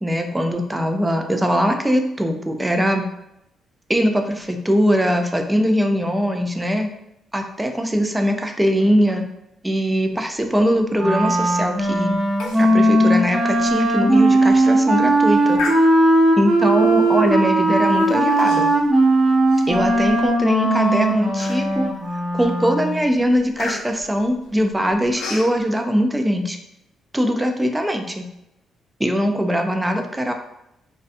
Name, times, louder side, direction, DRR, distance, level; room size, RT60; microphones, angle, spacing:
voice 1, 0.0-3.1 3.9-6.9 7.3-9.3 9.6-12.2 12.6-15.6 16.4-18.7 19.7-21.9 22.3-26.6 27.1-28.3 29.0-30.3, equal, 10° right, 5 dB, 0.3 m, -21 dB
Wind instrument woodwind instrument, 10.9-23.0, right 1 dB, 35° right, 0.8 m, -18 dB
Human voice, 12.4-12.7 13.0-13.1 13.6-13.8 14.3-14.6 15.5-16.3 17.0-17.3 18.3-18.9 19.3-20.3 20.8-20.9 21.4-21.9 22.4-22.6 22.9-25.5, left 3 dB, 85° left, 0.4 m, -33 dB
2.5 x 2.2 x 2.5 m, 0.83 s
cardioid pair, 90°, 0 cm